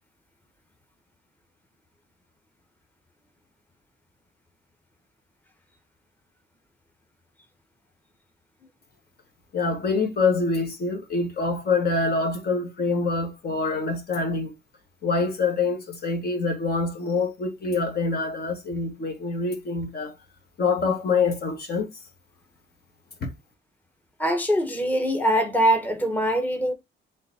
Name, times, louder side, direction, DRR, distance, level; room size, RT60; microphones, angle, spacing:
voice 1, 9.5-14.5 15.0-20.1 20.6-21.9 23.2-23.3, left 4 dB, 50° left, 1.3 m, -25 dB
voice 2, 24.2-26.7, right 1 dB, 10° left, 0.9 m, -23 dB
3.8 x 3.3 x 4.1 m
cardioid pair, 90°, 20 cm